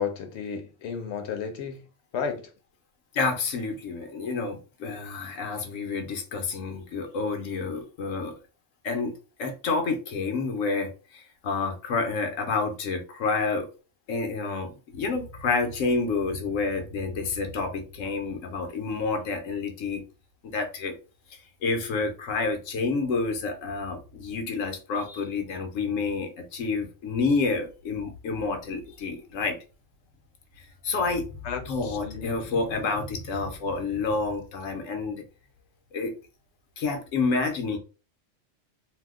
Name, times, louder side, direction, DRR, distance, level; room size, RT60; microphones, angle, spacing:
voice 1, 0.0-1.8 2.1-2.4 31.4-32.3, left 6 dB, 65° left, 0.8 m, -32 dB
voice 2, 3.1-8.3 8.8-9.1 9.4-13.7 14.1-20.0 20.5-20.9 21.6-29.6 30.6-31.2 31.7-35.2 35.9-36.1 36.8-37.8, left 4 dB, 90° left, 1.1 m, -29 dB
2.7 x 2.0 x 3.5 m
omnidirectional pair, 1.3 m